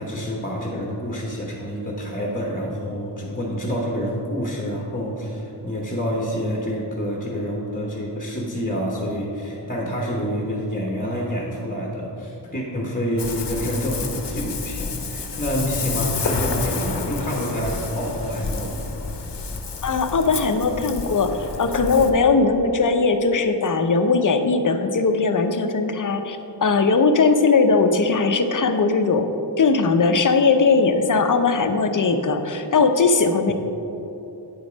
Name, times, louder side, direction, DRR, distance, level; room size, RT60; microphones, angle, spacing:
voice 1, 0.0-18.8 33.5-33.6, equal, 20° left, -2 dB, 1.0 m, -27 dB
Ocean, 13.2-22.1, left 4 dB, 75° left, 0.8 m, -29 dB
voice 2, 19.8-33.5, left 4 dB, 45° left, 7 dB, 0.6 m, -19 dB
8.8 x 5.3 x 5.0 m, 3.0 s
wide cardioid pair, 100°, 43 cm